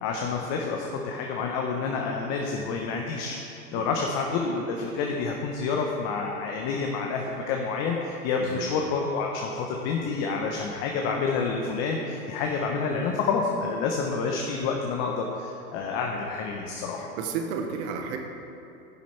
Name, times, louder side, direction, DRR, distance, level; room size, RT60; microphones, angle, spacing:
voice 1, 0.0-17.1, left 4 dB, 40° left, 1 dB, 0.9 m, -28 dB
voice 2, 17.0-18.2, right 6 dB, 45° right, 4 dB, 1.2 m, -32 dB
9.9 x 7.3 x 4.5 m, 2.7 s
hypercardioid pair, 115°, 46 cm